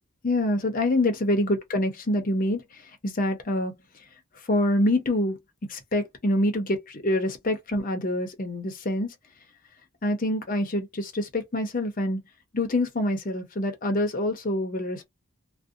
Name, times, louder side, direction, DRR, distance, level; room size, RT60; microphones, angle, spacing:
voice 1, 0.2-3.8 4.5-5.4 5.7-9.1 10.0-12.2 12.5-15.0, left 1 dB, 35° left, 0.6 m, -26 dB
2.6 x 2.1 x 2.5 m
head